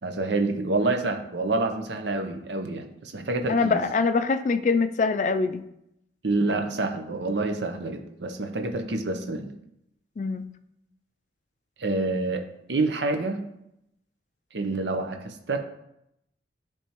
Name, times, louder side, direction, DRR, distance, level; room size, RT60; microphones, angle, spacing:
voice 1, 0.0-3.8 6.2-9.5 11.8-13.4 14.5-15.6, right 2 dB, 70° right, 5 dB, 0.7 m, -27 dB
voice 2, 3.5-5.6 10.2-10.5, left 4 dB, 40° left, 10 dB, 0.3 m, -24 dB
10.0 x 3.4 x 3.0 m, 0.80 s
head